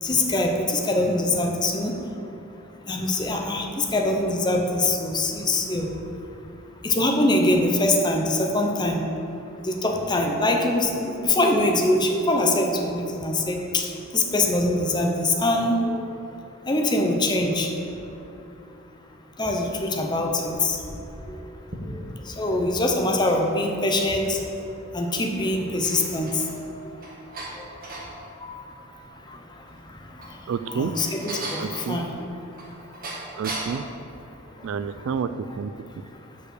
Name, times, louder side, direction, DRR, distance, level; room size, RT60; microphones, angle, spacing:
voice 1, 0.0-2.0 2.9-5.9 6.8-9.0 9.6-16.3 16.7-17.7 19.4-20.9 21.3-21.4 21.9-24.4 24.9-26.7 27.6-27.7 28.4-28.6 29.3-29.4 30.7-32.1, left 1 dB, 20° left, 2 dB, 0.7 m, -23 dB
sound 1, 20.4-22.3 23.0-24.7 25.1-25.2 25.6-28.1 29.9-33.9, right 2 dB, 45° right, 1.4 m, -38 dB
voice 2, 30.5-30.9 31.6-32.0 33.4-33.8 34.6-35.3 35.6-35.7, right 6 dB, 65° right, 12 dB, 0.3 m, -28 dB
6.5 x 5.3 x 6.4 m, 2.8 s
head